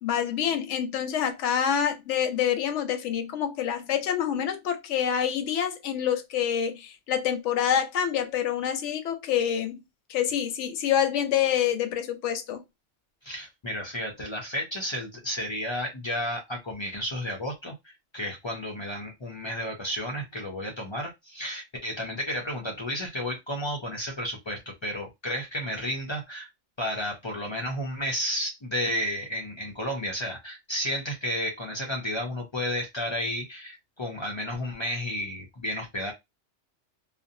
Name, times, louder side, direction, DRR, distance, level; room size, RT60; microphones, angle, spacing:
voice 1, 0.0-9.8 10.1-12.6, left 9 dB, 85° left, 0.9 m, -27 dB
voice 2, 13.2-26.5 26.8-36.1, equal, 45° left, 0.4 m, -32 dB
2.6 x 2.0 x 2.5 m
omnidirectional pair, 1.2 m